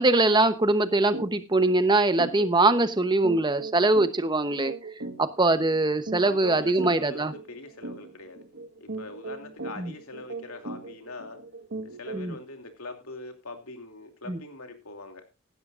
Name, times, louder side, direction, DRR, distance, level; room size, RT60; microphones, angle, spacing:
voice 1, 0.0-4.7 5.2-7.3 9.8-9.9 12.1-12.3 14.3-14.4, right 2 dB, 20° right, 11 dB, 0.9 m, -22 dB
sound 1, 1.1-1.3 1.7-1.8 2.2-12.4, right 2 dB, 60° right, 1.5 m, -39 dB
voice 2, 6.2-8.4 8.8-11.4 11.8-15.2, left 2 dB, 80° left, 5 dB, 2.8 m, -42 dB
16.5 x 12.0 x 2.5 m, 0.26 s
head